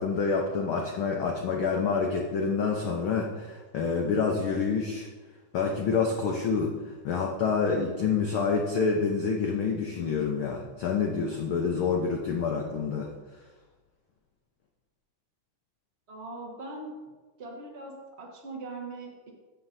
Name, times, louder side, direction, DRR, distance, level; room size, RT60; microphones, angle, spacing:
voice 1, 0.0-5.1 5.5-13.1, left 5 dB, 90° left, 1 dB, 1.1 m, -27 dB
voice 2, 16.1-16.9 17.4-19.3, right 2 dB, 30° right, -2 dB, 1.2 m, -41 dB
13.5 x 7.6 x 2.7 m, 1.3 s
omnidirectional pair, 3.5 m